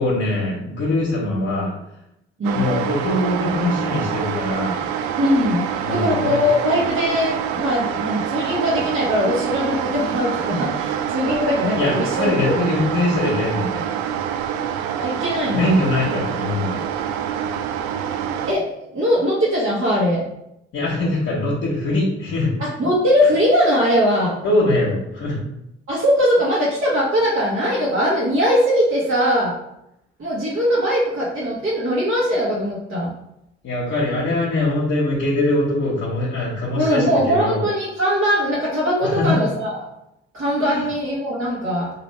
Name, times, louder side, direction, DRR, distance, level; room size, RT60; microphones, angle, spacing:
voice 1, 0.0-1.7 2.5-4.8 5.8-6.4 11.8-13.9 15.5-16.8 20.7-22.5 24.4-25.4 33.6-37.6 39.0-39.4 40.7-40.8, left 2 dB, 50° left, -5 dB, 1.1 m, -22 dB
voice 2, 2.4-2.7 5.2-12.6 15.0-15.7 18.4-18.6 18.9-20.2 22.6-24.4 25.9-29.5 30.2-33.1 36.7-39.8 40.3-41.9, equal, 40° right, -7 dB, 1.3 m, -20 dB
sound 1, 2.4-18.5, right 9 dB, 65° right, 0.4 m, -26 dB
3.1 x 2.9 x 3.1 m, 0.81 s
hypercardioid pair, 45°, 32 cm